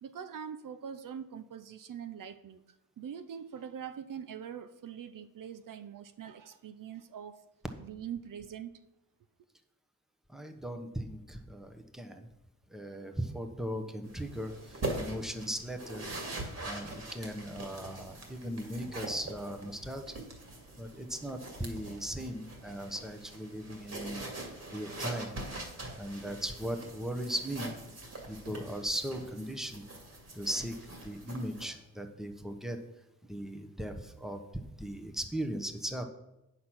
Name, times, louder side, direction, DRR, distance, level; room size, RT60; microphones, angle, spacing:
voice 1, 0.0-2.6 3.0-7.4 7.8-8.8, right 8 dB, 70° right, 10 dB, 0.6 m, -43 dB
voice 2, 10.3-12.3 12.7-16.1 16.6-20.1 20.8-24.3 24.7-25.4 26.0-27.7 28.3-29.8 30.3-32.8 33.2-34.4 34.8-36.0, equal, ahead, 6 dB, 1.0 m, -38 dB
sound 1, 14.0-31.7, right 2 dB, 50° right, 2.3 m, -43 dB
8.4 x 5.8 x 6.2 m, 0.92 s
wide cardioid pair, 90°, 33 cm